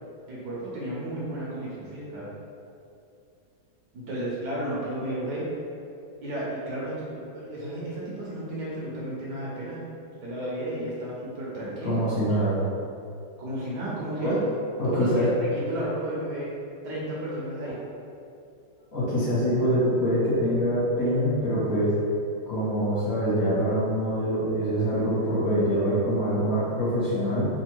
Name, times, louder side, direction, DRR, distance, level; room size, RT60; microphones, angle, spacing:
voice 1, 0.3-2.3 3.9-5.4 6.2-9.8 10.2-12.0 12.4-12.5 13.4-14.4 14.8-16.5 16.8-17.7, right 1 dB, 65° right, -7 dB, 1.3 m, -32 dB
voice 2, 11.8-12.6 14.2-14.3 14.8-15.2 18.9-21.9 22.5-27.5, equal, 50° left, -10 dB, 1.4 m, -24 dB
3.5 x 2.6 x 4.4 m, 2.5 s
omnidirectional pair, 2.2 m